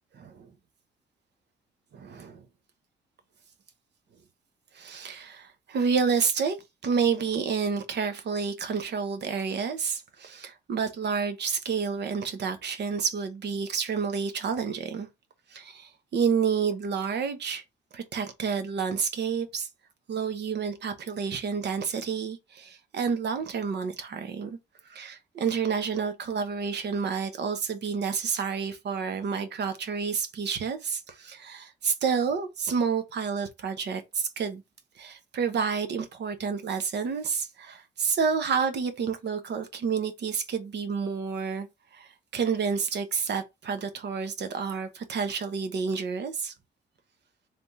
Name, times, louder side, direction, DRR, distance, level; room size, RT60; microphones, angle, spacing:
voice 1, 0.1-0.5 1.9-2.4 4.7-6.6 6.8-15.1 15.5-17.6 17.9-19.7 20.1-24.6 24.9-34.6 35.0-41.7 41.9-46.5, right 6 dB, 60° right, 0.9 m, -29 dB
3.5 x 2.8 x 4.5 m
cardioid pair, 90°, 20 cm